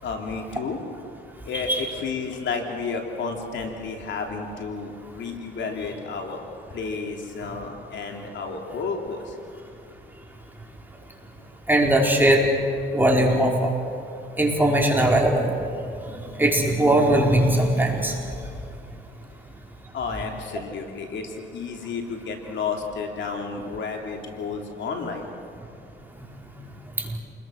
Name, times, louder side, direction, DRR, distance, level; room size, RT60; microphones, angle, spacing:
voice 1, 0.0-0.8 1.4-6.4 6.7-9.3 19.9-25.3, left 4 dB, 65° left, 2 dB, 3.2 m, -31 dB
voice 2, 11.7-12.4 12.9-13.7 14.4-15.5 16.4-18.1, right 1 dB, 10° right, -1 dB, 4.9 m, -19 dB
29.0 x 21.5 x 6.5 m, 2.6 s
cardioid pair, 90°, 20 cm